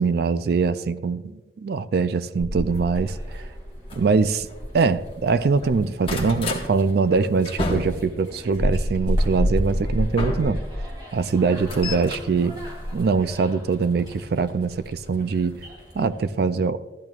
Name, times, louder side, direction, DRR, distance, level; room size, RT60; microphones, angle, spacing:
voice 1, 0.0-3.4 3.9-4.5 4.7-10.6 11.1-12.6 12.9-15.6 15.9-16.8, right 4 dB, 55° right, 14 dB, 0.4 m, -23 dB
sound 1, 2.4-5.2 5.5-6.7 7.1-10.9 11.3-13.5 14.5-14.7 15.2-15.3 15.5-15.6, left 1 dB, 30° left, 1.2 m, -28 dB
sound 2, 2.9-16.3, equal, 25° right, 2.3 m, -45 dB
14.0 x 10.5 x 2.4 m, 1.2 s
head